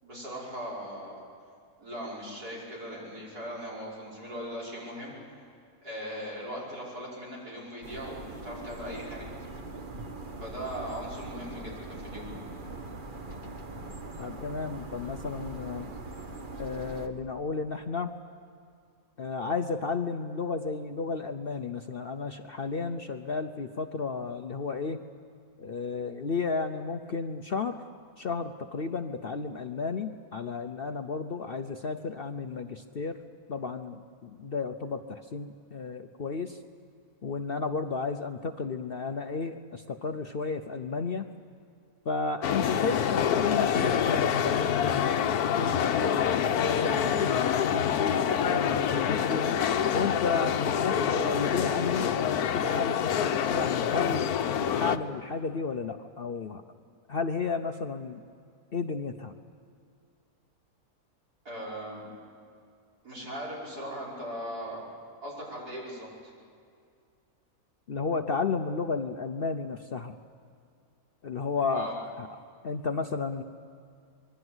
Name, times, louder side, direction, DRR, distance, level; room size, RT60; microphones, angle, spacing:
voice 1, 0.0-1.2 1.8-5.5 5.8-9.3 10.4-12.3 61.4-62.0 63.0-64.8 65.2-66.3 71.7-72.0, equal, 80° right, -4 dB, 6.3 m, -39 dB
sound 1, 7.8-17.1, right 2 dB, 35° right, 1.4 m, -41 dB
voice 2, 14.2-15.9 16.6-18.1 19.2-25.0 25.6-27.8 28.2-33.2 33.5-36.6 37.2-41.3 42.1-49.6 49.9-53.0 53.5-54.3 54.7-56.6 57.1-58.2 58.7-59.3 67.9-70.2 71.2-72.3 72.6-73.4, left 4 dB, 50° left, 7 dB, 0.7 m, -33 dB
sound 2, 42.4-55.0, left 8 dB, 75° left, 1.3 m, -26 dB
25.5 x 22.0 x 8.0 m, 2.3 s
omnidirectional pair, 1.6 m